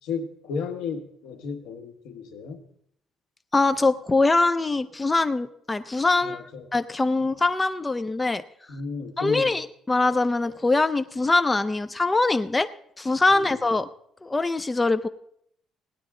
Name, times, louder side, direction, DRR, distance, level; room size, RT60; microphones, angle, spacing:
voice 1, 0.0-2.6 6.2-6.7 8.7-9.5 13.3-13.6, left 5 dB, 80° left, 6 dB, 1.5 m, -33 dB
voice 2, 3.5-8.4 9.2-12.7 13.0-13.9 14.2-15.1, left 3 dB, 15° left, 11 dB, 0.4 m, -23 dB
17.5 x 10.5 x 3.7 m, 0.71 s
cardioid pair, 160°, 0 cm